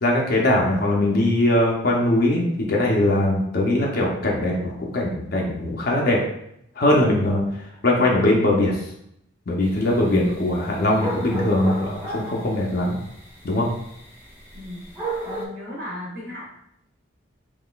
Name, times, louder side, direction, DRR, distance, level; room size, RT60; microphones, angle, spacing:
voice 1, 0.0-6.2 6.8-7.4 7.8-8.8 9.5-13.0 13.4-13.7, left 1 dB, 50° left, -2 dB, 0.5 m, -21 dB
sound 1, 9.6-15.4, right 2 dB, 10° right, 0.6 m, -35 dB
voice 2, 14.5-14.9 15.2-16.4, left 1 dB, 50° right, -9 dB, 0.9 m, -35 dB
3.7 x 3.1 x 2.3 m, 0.77 s
head